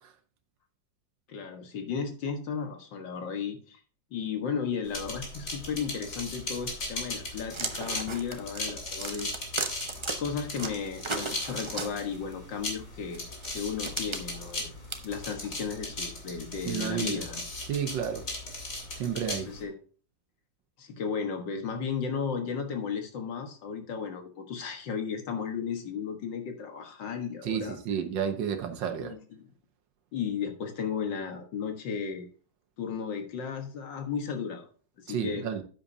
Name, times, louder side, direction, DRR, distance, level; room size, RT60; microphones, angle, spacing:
voice 1, 1.3-3.8 4.1-9.4 10.2-13.2 13.5-14.7 15.0-17.4 19.3-19.7 20.8-27.8 29.0-29.5 30.1-32.3 32.8-34.7 35.0-35.5, left 6 dB, 85° left, 2.2 m, -34 dB
sound 1, 4.9-19.6, left 2 dB, 45° left, 2.9 m, -38 dB
sound 2, 7.5-10.1 10.5-12.3 13.1-15.8, right 3 dB, 30° right, 0.5 m, -36 dB
voice 2, 16.7-17.2 17.7-18.2 18.9-19.5 27.4-29.2 35.1-35.6, right 8 dB, 85° right, 1.8 m, -31 dB
10.0 x 8.7 x 2.8 m
omnidirectional pair, 1.9 m